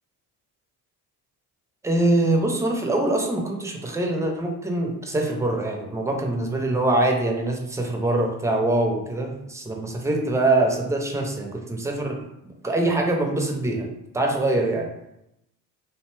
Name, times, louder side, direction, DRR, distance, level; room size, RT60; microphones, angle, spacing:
voice 1, 1.8-12.2 12.6-13.9 14.1-14.9, right 2 dB, 5° right, 2 dB, 0.3 m, -24 dB
2.6 x 2.1 x 3.0 m, 0.85 s
hypercardioid pair, 65°, 45 cm